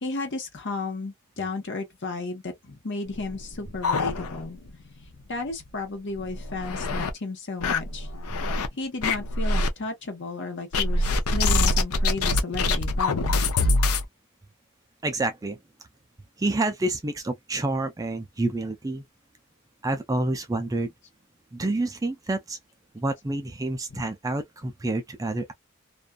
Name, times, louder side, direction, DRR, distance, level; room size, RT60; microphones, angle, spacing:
voice 1, 0.0-4.6 5.3-8.1 8.7-13.4 23.9-24.0, left 3 dB, 55° left, 1.0 m, -33 dB
sound 1, 3.1-4.7 5.0-5.1 5.5-5.6 6.2-7.1 7.6-8.7 9.0-9.7 10.7-14.1, left 2 dB, 75° left, 0.6 m, -24 dB
voice 2, 15.0-15.6 16.4-19.0 19.8-20.9 21.5-22.6 22.9-25.5, right 2 dB, 15° right, 0.3 m, -28 dB
2.5 x 2.3 x 2.3 m
head